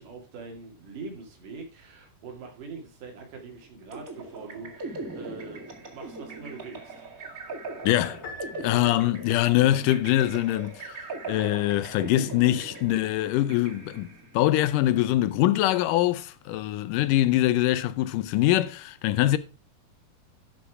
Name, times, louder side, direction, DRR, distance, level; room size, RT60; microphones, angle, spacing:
voice 1, 0.0-6.9, right 4 dB, 80° right, 3.9 m, -43 dB
sound 1, 3.9-14.3, right 3 dB, 30° right, 2.1 m, -40 dB
voice 2, 7.8-8.2 8.6-11.0 11.3-19.4, left 14 dB, 85° left, 2.3 m, -23 dB
Piano, 8.2-9.5, left 3 dB, 40° left, 1.9 m, -43 dB
12.0 x 5.4 x 4.7 m
omnidirectional pair, 3.7 m